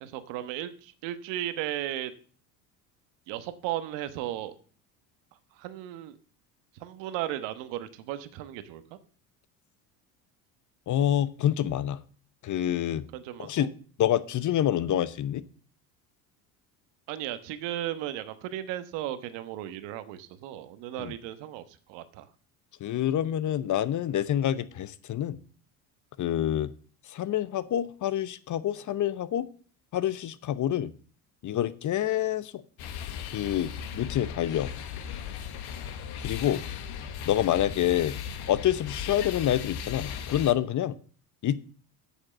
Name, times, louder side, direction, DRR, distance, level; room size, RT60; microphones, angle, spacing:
voice 1, 0.0-2.1 3.3-4.5 5.5-6.2 6.8-9.0 13.1-13.7 17.1-22.3, right 12 dB, 70° right, 11 dB, 1.3 m, -35 dB
voice 2, 10.9-12.0 12.4-13.0 13.4-13.7 14.0-15.4 21.0-21.1 22.8-25.4 26.2-26.7 27.1-29.5 29.9-30.9 31.4-32.5 33.3-34.7 36.2-36.7 37.3-38.2 38.5-41.0 41.4-41.6, left 11 dB, 40° left, 16 dB, 0.8 m, -27 dB
sound 1, 32.8-40.5, left 8 dB, 55° left, 1.3 m, -37 dB
8.7 x 6.5 x 7.4 m, 0.43 s
hypercardioid pair, 75°, 45 cm